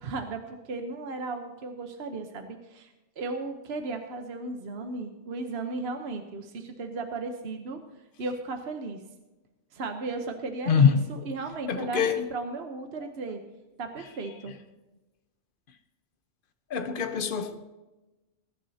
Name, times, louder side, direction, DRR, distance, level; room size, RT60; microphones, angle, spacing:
voice 1, 0.0-2.9 3.2-7.8 8.2-9.0 9.7-13.4 13.8-14.6, right 3 dB, 60° right, 1.2 m, -35 dB
voice 2, 10.7-11.0 11.7-12.2 16.7-17.7, left 6 dB, 50° left, 1.0 m, -24 dB
21.0 x 11.0 x 2.8 m
omnidirectional pair, 1.3 m